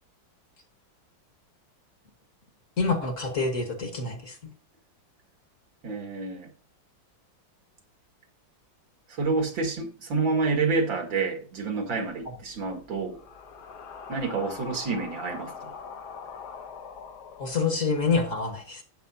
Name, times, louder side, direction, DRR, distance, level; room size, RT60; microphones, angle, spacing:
voice 1, 2.8-4.5 17.4-18.8, left 4 dB, 45° left, 1.7 m, -27 dB
voice 2, 5.8-6.5 9.1-13.2 14.1-15.7, right 4 dB, 80° right, 2.7 m, -28 dB
sound 1, 12.1-18.2, left 6 dB, 65° left, 1.4 m, -43 dB
12.5 x 9.2 x 2.7 m
omnidirectional pair, 2.1 m